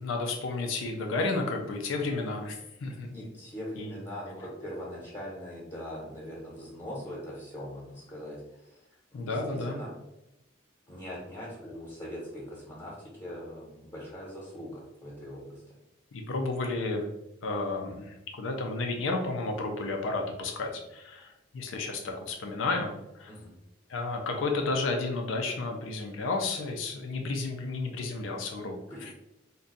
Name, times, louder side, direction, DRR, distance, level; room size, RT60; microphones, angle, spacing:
voice 1, 0.0-3.2 3.8-4.0 9.1-9.8 16.1-17.1 17.4-23.3 23.9-29.1, left 3 dB, 85° left, 3 dB, 0.5 m, -32 dB
voice 2, 3.1-8.8 9.1-9.9 10.9-15.6 16.6-16.7 23.3-23.5 28.9-29.1, equal, 25° left, -7 dB, 0.8 m, -41 dB
2.6 x 2.2 x 3.8 m, 0.91 s
head